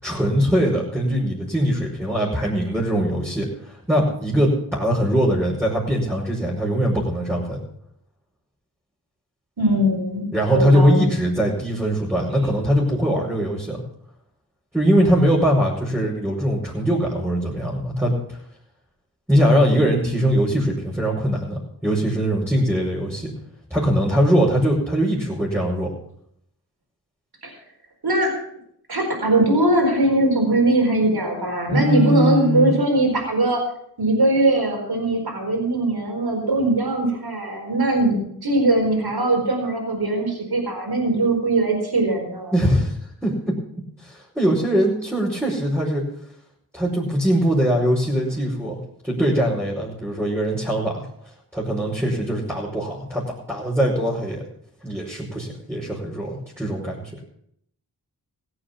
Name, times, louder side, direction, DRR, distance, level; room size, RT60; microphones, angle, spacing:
voice 1, 0.0-7.6 10.3-13.8 14.7-18.1 19.3-23.3 23.7-25.9 31.7-32.7 42.5-43.0 43.2-43.6 44.0-46.0 46.7-48.8 49.0-51.1 51.5-54.4 54.8-57.1, equal, 5° right, -7 dB, 5.3 m, -21 dB
voice 2, 9.6-11.1 27.4-27.5 28.0-28.3 28.9-33.6 34.0-42.5, right 2 dB, 65° right, 2 dB, 4.6 m, -21 dB
16.5 x 8.0 x 7.2 m, 0.71 s
cardioid pair, 45°, 40 cm